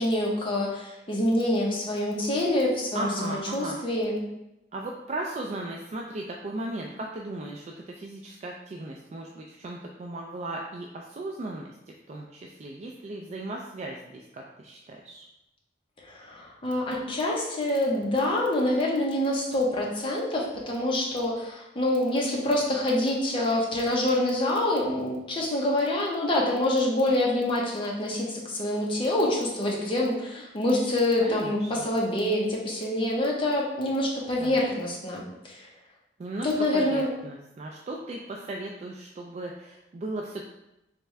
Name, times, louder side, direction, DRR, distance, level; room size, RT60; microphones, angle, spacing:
voice 1, 0.0-4.2 16.0-35.7 36.4-37.1, left 1 dB, 30° left, -2 dB, 0.8 m, -26 dB
voice 2, 2.9-3.8 4.7-11.7 12.1-15.2 31.2-31.7 34.4-34.6 36.2-40.4, right 2 dB, 40° right, 0 dB, 0.3 m, -36 dB
3.5 x 3.4 x 3.2 m, 0.90 s
head